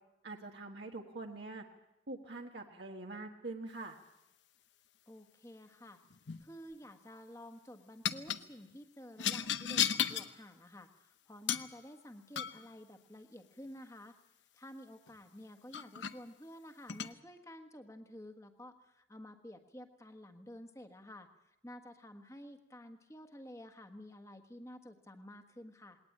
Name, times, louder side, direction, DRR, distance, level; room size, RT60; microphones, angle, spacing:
voice 1, 0.2-1.6 2.1-3.9, right 2 dB, 70° right, 1 dB, 1.6 m, -44 dB
voice 2, 5.1-6.0 6.4-14.1 14.6-26.0, left 1 dB, 15° left, 7 dB, 1.5 m, -51 dB
sound 1, 6.1-6.5 8.1-8.4 9.2-10.3 11.5-11.7 12.4-12.7 15.1-15.2 15.7-16.2 16.9-17.1, left 9 dB, 80° left, 0.9 m, -34 dB
20.0 x 18.5 x 8.7 m, 0.90 s
head